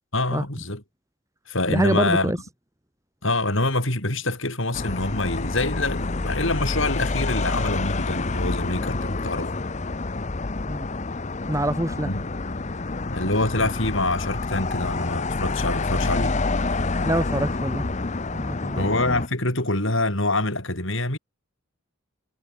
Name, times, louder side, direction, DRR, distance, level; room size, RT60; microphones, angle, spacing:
voice 1, 0.1-0.8 1.5-2.3 3.2-9.5 12.0-12.2 13.1-16.4 18.8-21.2, left 2 dB, 60° left, 6.9 m, -25 dB
voice 2, 1.7-2.4 10.7-10.9 11.5-12.1 17.0-17.9 18.3-18.9, right 1 dB, 15° right, 1.6 m, -25 dB
sound 1, 4.7-19.3, left 3 dB, 30° left, 0.8 m, -28 dB
head